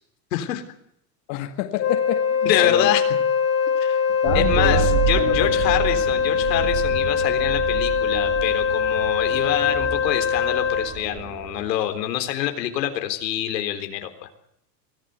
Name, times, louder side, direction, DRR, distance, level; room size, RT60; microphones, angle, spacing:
voice 1, 0.3-0.6 2.5-3.0 3.8-4.0 4.3-14.3, left 12 dB, 90° left, 7 dB, 3.8 m, -26 dB
voice 2, 1.3-3.0 4.2-5.5, left 13 dB, 50° left, 6 dB, 2.1 m, -27 dB
Wind instrument woodwind instrument, 1.8-10.9, left 6 dB, 30° left, 2.7 m, -22 dB
sound 1, 4.3-11.7, right 9 dB, 35° right, 2.1 m, -29 dB
24.0 x 15.5 x 8.2 m, 0.75 s
supercardioid pair, 155°, 48 cm